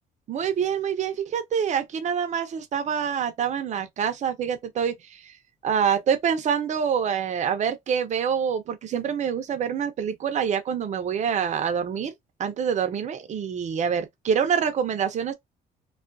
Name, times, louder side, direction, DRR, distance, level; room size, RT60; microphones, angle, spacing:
voice 1, 0.3-5.3 5.6-12.1 12.4-15.3, right 7 dB, 45° right, 0.6 m, -26 dB
2.4 x 2.3 x 2.5 m
cardioid pair, 110°, 17 cm